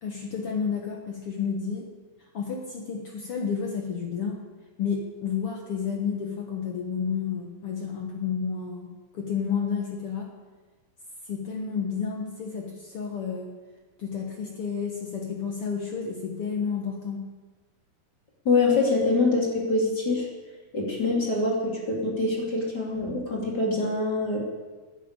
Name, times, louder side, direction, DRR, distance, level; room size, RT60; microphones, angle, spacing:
voice 1, 0.0-1.9 2.3-4.4 4.8-10.3 11.3-13.5 14.0-17.2, left 6 dB, 60° left, 1 dB, 1.6 m, -31 dB
voice 2, 18.4-20.3 20.7-24.4, left 3 dB, 30° left, -3 dB, 2.9 m, -25 dB
12.0 x 10.0 x 8.9 m, 1.3 s
omnidirectional pair, 4.2 m